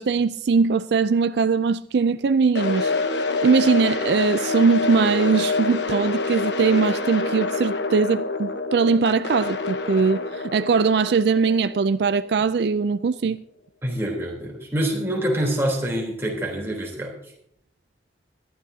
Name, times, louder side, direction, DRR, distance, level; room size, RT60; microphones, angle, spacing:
voice 1, 0.0-2.9 3.4-13.4, right 5 dB, 70° right, 0.4 m, -21 dB
sound 1, 2.5-12.6, left 3 dB, 80° left, 1.1 m, -27 dB
voice 2, 13.8-17.1, right 1 dB, 15° right, 3.4 m, -26 dB
21.0 x 11.5 x 2.8 m
head